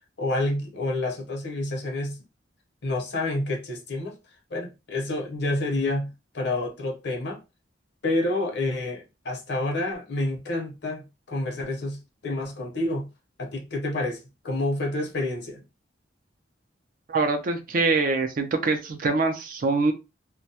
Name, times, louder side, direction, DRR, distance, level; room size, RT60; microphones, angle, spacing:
voice 1, 0.2-2.2 2.8-4.2 4.5-7.4 8.0-13.1 13.4-14.2 14.4-15.6, left 2 dB, 65° left, 0.7 m, -28 dB
voice 2, 17.1-19.9, right 3 dB, 50° right, 0.4 m, -24 dB
2.2 x 2.0 x 2.7 m
head